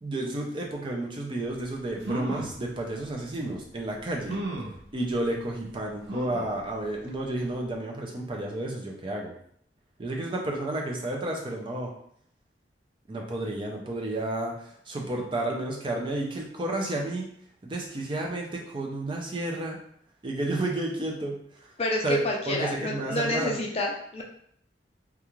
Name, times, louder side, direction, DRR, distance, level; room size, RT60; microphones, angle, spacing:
voice 1, 0.0-4.4 4.9-9.3 10.0-11.9 13.1-17.2 17.6-19.8 20.2-21.7 22.0-23.5, right 2 dB, 30° right, 0 dB, 0.4 m, -31 dB
sound 1, 1.6-1.7 2.0-2.6 3.3-3.4 4.3-4.8 6.1-6.6 7.1-7.2 7.5-7.6, right 2 dB, 85° right, 0.6 m, -34 dB
voice 2, 21.8-24.2, left 2 dB, 35° left, 0 dB, 0.4 m, -29 dB
2.3 x 2.3 x 3.0 m, 0.66 s
head